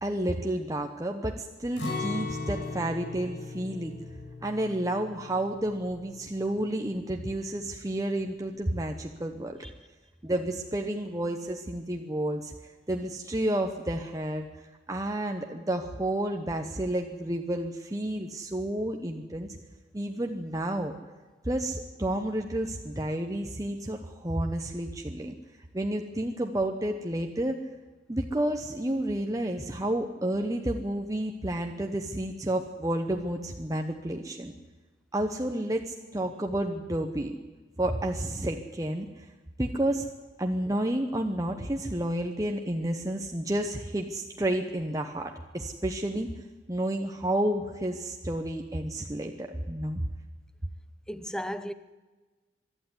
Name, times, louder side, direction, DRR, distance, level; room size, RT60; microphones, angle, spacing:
voice 1, 0.0-4.0 4.4-9.6 10.2-12.5 12.9-14.5 14.9-19.5 19.9-20.9 21.4-25.3 25.7-27.6 28.1-34.5 35.1-37.4 37.8-39.1 39.6-40.1 40.4-46.3 46.7-50.0, right 1 dB, 20° right, 1.0 m, -30 dB
Acoustic guitar, 1.8-7.7 8.0-8.1 8.6-9.1, left 3 dB, 80° left, 6.7 m, -39 dB
voice 2, 51.1-51.7, equal, 5° left, 0.8 m, -34 dB
23.0 x 12.0 x 9.8 m
head